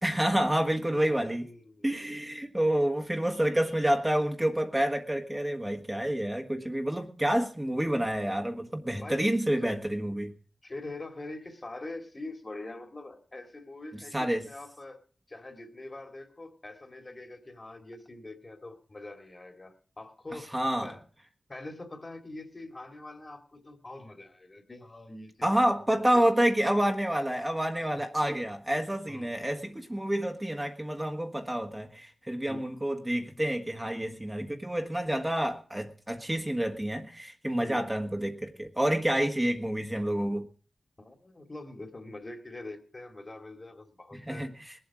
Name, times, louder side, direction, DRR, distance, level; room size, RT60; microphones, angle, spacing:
voice 1, 0.0-1.5 1.8-10.3 14.1-14.4 20.5-20.9 25.4-40.5 44.3-44.7, right 1 dB, 15° right, 4 dB, 1.5 m, -28 dB
voice 2, 0.9-2.2 9.0-9.3 9.6-9.8 10.6-15.0 15.3-20.5 20.8-21.0 21.5-25.5 26.1-26.2 27.9-28.0 29.1-29.4 32.5-32.6 37.6-38.0 41.0-44.5, left 2 dB, 35° left, 7 dB, 2.3 m, -44 dB
20.0 x 7.9 x 6.2 m, 0.41 s
wide cardioid pair, 80°, 0 cm